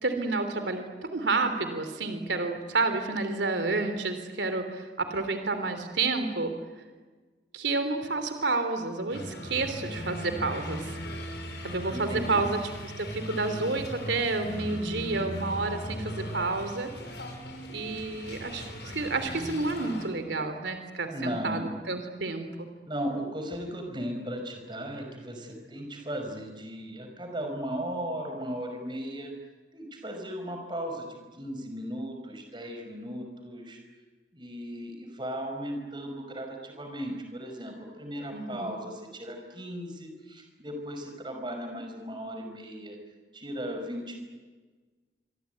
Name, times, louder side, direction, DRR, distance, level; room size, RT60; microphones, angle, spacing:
voice 1, 0.0-6.5 7.5-11.0 11.6-12.6 13.0-16.9 17.7-22.7 38.3-38.8, right 3 dB, 85° right, 8 dB, 3.2 m, -30 dB
sound 1, 9.1-20.1, left 1 dB, 75° left, 6.6 m, -38 dB
voice 2, 11.9-12.4 21.1-21.7 22.9-29.3 29.7-33.8 34.3-43.0 43.3-44.2, equal, 25° right, 4 dB, 5.7 m, -36 dB
26.0 x 24.0 x 9.4 m, 1.4 s
head